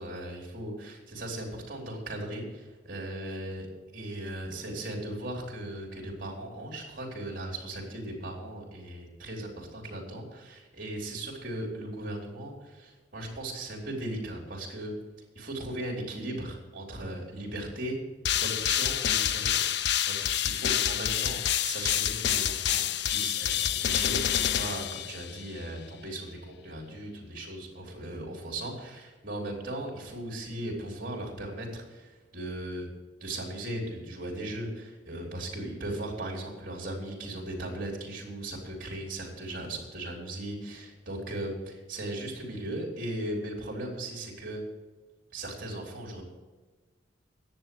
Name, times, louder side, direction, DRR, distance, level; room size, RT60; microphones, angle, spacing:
voice 1, 0.0-3.7 3.9-14.9 15.4-18.0 18.3-20.2 20.4-32.9 33.2-44.6 45.3-46.2, right 1 dB, 50° right, -1 dB, 3.4 m, -37 dB
sound 1, 18.2-25.5, left 10 dB, 65° left, 0.5 m, -28 dB
10.5 x 7.8 x 9.2 m, 1.3 s
head